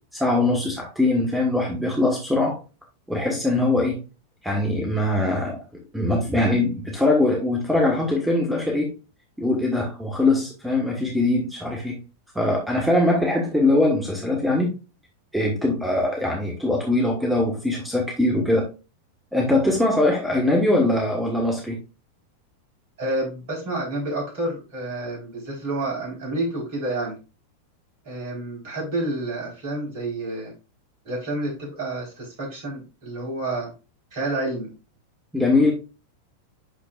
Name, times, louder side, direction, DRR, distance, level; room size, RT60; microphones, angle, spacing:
voice 1, 0.1-2.6 3.1-4.0 4.4-5.6 5.9-8.9 9.4-12.0 12.3-14.7 15.3-18.7 19.3-21.8 35.3-35.7, left 2 dB, 5° right, -1 dB, 1.6 m, -22 dB
voice 2, 23.0-27.2 28.0-30.5 31.0-33.7 34.1-34.7, right 2 dB, 45° right, -1 dB, 4.4 m, -29 dB
11.5 x 4.4 x 2.5 m, 0.30 s
figure-of-eight pair, 90°, 0 cm